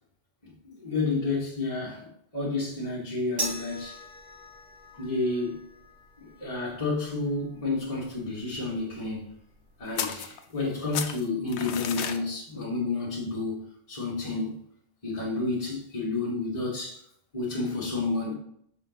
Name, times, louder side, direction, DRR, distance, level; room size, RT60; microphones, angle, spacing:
voice 1, 0.4-4.0 5.0-5.6 6.2-9.3 9.8-14.6 15.0-17.0 17.3-18.3, left 3 dB, 30° left, 1.5 m, -30 dB
sound 1, 3.4-9.9, right 1 dB, 80° right, 2.5 m, -42 dB
sound 2, 10.0-10.7 10.9-12.2, left 8 dB, 75° left, 0.9 m, -33 dB
5.8 x 4.3 x 3.9 m
omnidirectional pair, 1.2 m